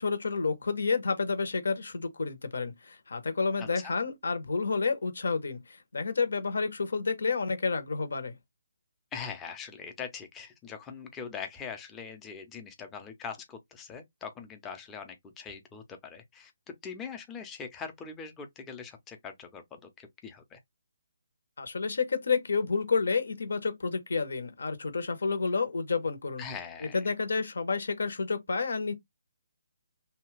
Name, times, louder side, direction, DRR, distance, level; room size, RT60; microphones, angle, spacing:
voice 1, 0.0-8.3 21.6-26.4 26.8-28.9, left 4 dB, 75° left, 0.9 m, -30 dB
voice 2, 3.6-3.9 9.1-16.5 16.8-20.6 26.4-27.0, left 6 dB, 15° left, 0.6 m, -42 dB
2.8 x 2.3 x 3.1 m
hypercardioid pair, 155°, 0 cm